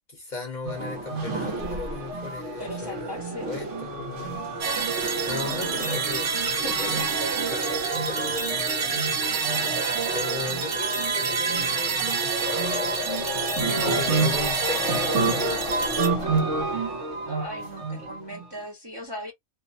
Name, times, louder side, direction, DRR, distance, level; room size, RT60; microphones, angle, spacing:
voice 1, 0.1-3.2 3.5-4.4 5.2-8.7 10.1-12.6 13.4-15.6, left 4 dB, 45° left, 0.8 m, -37 dB
sound 1, 0.7-18.5, right 3 dB, 80° right, 1.1 m, -30 dB
voice 2, 2.6-3.5 6.6-7.4 13.7-14.6 17.3-19.3, equal, 25° right, 0.6 m, -38 dB
sound 2, 4.6-16.1, right 6 dB, 60° right, 0.9 m, -28 dB
sound 3, 12.5-18.2, left 8 dB, 75° left, 0.9 m, -36 dB
2.6 x 2.0 x 2.5 m
omnidirectional pair, 1.2 m